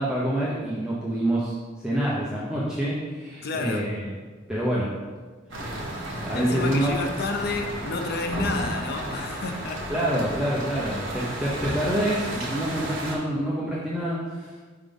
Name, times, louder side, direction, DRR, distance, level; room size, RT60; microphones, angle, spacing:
voice 1, 0.0-4.1 4.5-4.9 6.3-6.9 9.9-14.5, right 1 dB, 5° right, -7 dB, 0.7 m, -27 dB
voice 2, 3.4-3.9 6.3-9.9, left 3 dB, 55° left, 4 dB, 0.6 m, -30 dB
sound 1, 5.5-13.1, right 1 dB, 70° right, 1.4 m, -33 dB
4.8 x 3.8 x 5.3 m, 1.4 s
head